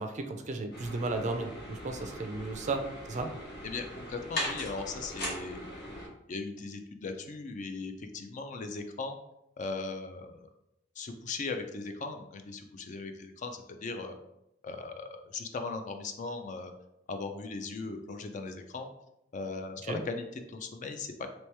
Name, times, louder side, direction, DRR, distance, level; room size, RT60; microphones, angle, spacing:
voice 1, 0.0-3.3 19.9-20.0, right 3 dB, 40° right, 6 dB, 0.4 m, -34 dB
sound 1, 0.7-6.1, left 1 dB, 60° left, 1.3 m, -40 dB
voice 2, 3.6-5.9 6.3-9.2 9.6-10.5 11.0-14.2 14.6-16.7 17.1-18.9 19.3-21.1, left 3 dB, 40° left, 6 dB, 0.4 m, -38 dB
3.1 x 3.0 x 3.3 m, 0.83 s
head